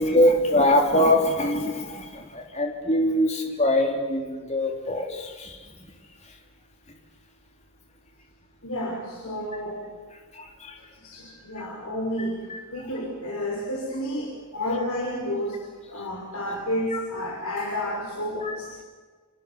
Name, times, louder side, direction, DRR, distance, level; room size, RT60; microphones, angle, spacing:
voice 1, 0.0-5.5 10.4-10.7 16.9-17.0 18.4-18.5, left 1 dB, 30° left, 2 dB, 3.4 m, -23 dB
voice 2, 8.6-9.8 10.8-12.4 12.7-15.6 15.9-18.8, left 1 dB, 80° left, -2 dB, 5.7 m, -31 dB
28.0 x 28.0 x 7.2 m, 1.5 s
head